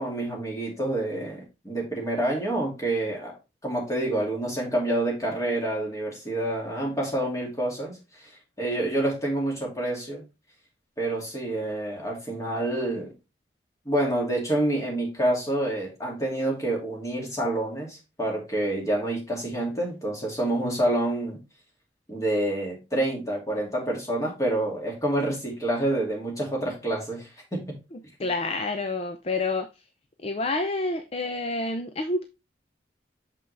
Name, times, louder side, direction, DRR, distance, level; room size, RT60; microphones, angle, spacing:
voice 1, 0.0-3.3 3.6-8.3 8.6-10.2 11.0-13.1 13.9-21.4 22.1-27.7, right 1 dB, 15° left, 2.4 m, -28 dB
voice 2, 27.9-29.8 30.2-32.2, left 2 dB, 35° left, 0.5 m, -29 dB
6.8 x 5.5 x 3.3 m
head